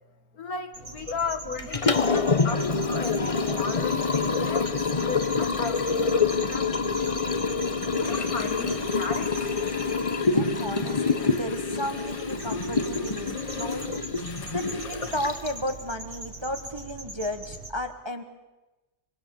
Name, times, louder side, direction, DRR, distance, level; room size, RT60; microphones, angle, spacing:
voice 1, 0.3-6.7 7.0-7.4 8.0-9.5, left 4 dB, 60° left, 8 dB, 2.2 m, -36 dB
sound 1, 0.7-17.7, right 3 dB, 50° right, 4.8 m, -42 dB
Liquid, 1.6-15.7, left 4 dB, 25° left, 0.8 m, -26 dB
sound 2, 7.9-15.5, left 4 dB, 75° left, 2.6 m, -44 dB
voice 2, 10.3-18.2, equal, 15° right, 6 dB, 1.3 m, -34 dB
26.0 x 24.0 x 7.1 m, 1.1 s
omnidirectional pair, 1.8 m